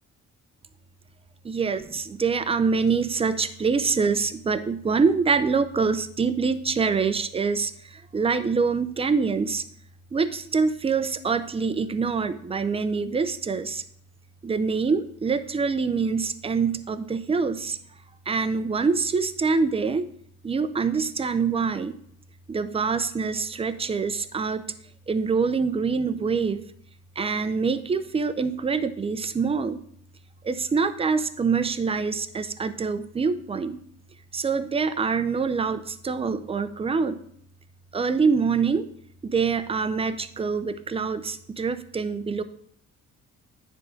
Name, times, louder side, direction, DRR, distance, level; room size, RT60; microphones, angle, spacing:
voice 1, 1.4-9.6 10.1-13.8 14.4-17.8 18.3-20.0 20.4-22.0 22.5-24.6 25.1-26.7 27.2-29.8 30.4-33.8 34.3-37.2 37.9-38.9 39.2-42.4, right 5 dB, 20° right, 12 dB, 0.5 m, -25 dB
9.4 x 3.6 x 5.1 m, 0.64 s
cardioid pair, 90°, 30 cm